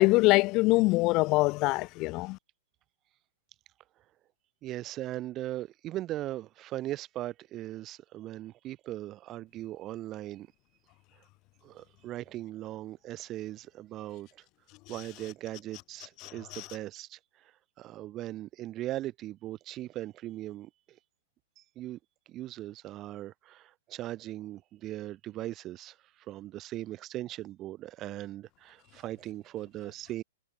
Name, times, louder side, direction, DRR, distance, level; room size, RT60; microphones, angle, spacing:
voice 1, 0.0-2.4 16.2-16.6, left 23 dB, 25° left, 0.5 m, -24 dB
voice 2, 4.6-10.5 11.2-11.3 11.6-14.4 14.9-21.0 21.6-22.0 22.3-30.2, right 14 dB, 20° right, 1.2 m, -39 dB
hypercardioid pair, 175°, 0 cm